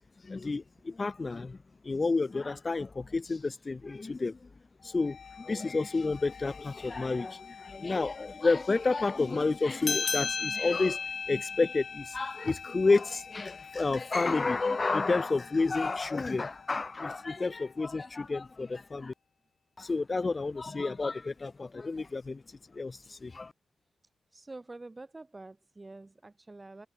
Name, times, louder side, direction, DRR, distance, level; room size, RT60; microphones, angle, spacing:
voice 1, 0.3-1.6 1.8-4.5 4.8-11.0 11.3-19.1 19.8-22.4 22.7-23.5, left 3 dB, 35° left, 0.4 m, -30 dB
sound 1, 4.8-18.8, left 7 dB, 70° left, 3.3 m, -51 dB
sound 2, 9.8-14.7, left 5 dB, 50° left, 1.2 m, -36 dB
voice 2, 24.3-26.9, right 2 dB, 25° right, 3.8 m, -47 dB
cardioid pair, 85°, 0 cm